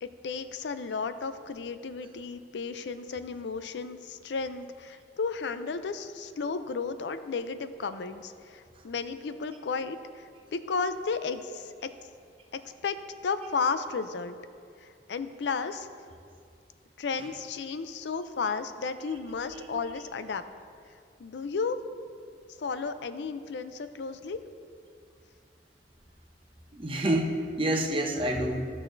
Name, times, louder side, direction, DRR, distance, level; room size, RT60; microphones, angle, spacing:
voice 1, 0.0-11.9 12.5-13.0 13.2-14.4 14.8-15.9 17.0-20.4 21.2-21.8 22.6-24.4, left 5 dB, 75° left, 11 dB, 0.4 m, -33 dB
voice 2, 26.7-28.7, right 1 dB, 30° right, 1 dB, 0.8 m, -28 dB
15.0 x 6.3 x 2.6 m, 2.3 s
head